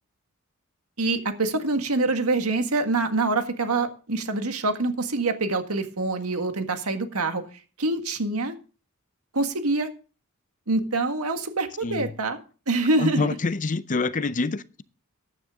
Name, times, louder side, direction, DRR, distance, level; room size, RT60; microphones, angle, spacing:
voice 1, 1.0-8.5 9.3-9.9 10.7-12.4 12.7-13.4, right 2 dB, 90° right, 1.7 m, -25 dB
voice 2, 13.0-14.8, left 3 dB, 35° left, 0.6 m, -26 dB
14.0 x 9.8 x 3.7 m
head